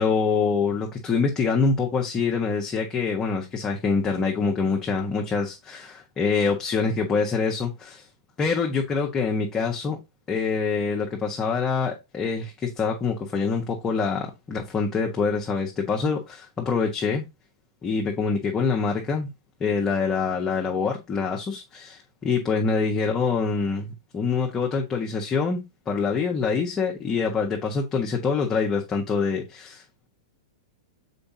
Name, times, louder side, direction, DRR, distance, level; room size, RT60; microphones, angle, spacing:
voice 1, 0.0-8.1 8.4-10.0 10.3-17.2 17.8-19.3 19.6-25.6 25.9-30.1, left 5 dB, 20° left, 1.3 m, -25 dB
6.8 x 4.9 x 2.8 m
figure-of-eight pair, 105°, 3 cm